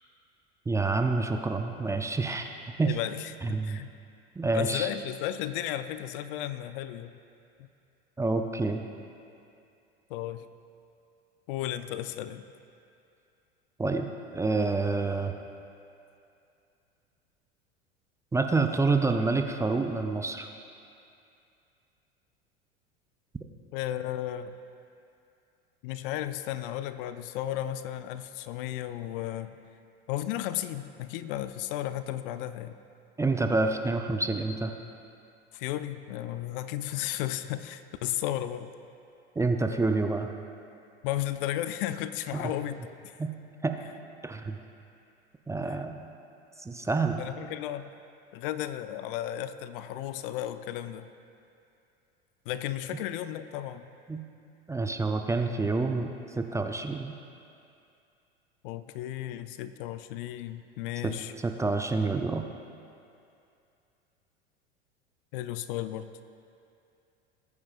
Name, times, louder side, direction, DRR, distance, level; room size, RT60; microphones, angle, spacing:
voice 1, 0.7-2.5 2.8-3.0 3.4-3.8 4.4-4.9 8.2-8.8 13.8-14.1 14.3-15.3 18.3-20.5 33.2-34.7 39.4-40.3 42.3-42.5 43.2-43.3 43.6-43.8 44.2-44.6 45.5-46.1 46.6-47.2 54.1-54.2 54.7-57.1 61.0-61.1 61.4-62.4, right 3 dB, 10° right, 5 dB, 0.5 m, -28 dB
voice 2, 2.8-3.9 4.5-7.2 10.1-10.5 11.5-12.4 23.7-24.5 25.8-29.6 30.1-32.8 35.5-38.7 41.0-43.1 45.6-45.8 47.2-47.9 48.3-51.1 52.5-53.9 58.6-61.3 65.3-66.1, left 12 dB, 55° left, 12 dB, 0.6 m, -34 dB
19.5 x 9.4 x 2.5 m, 2.6 s
hypercardioid pair, 80°, 32 cm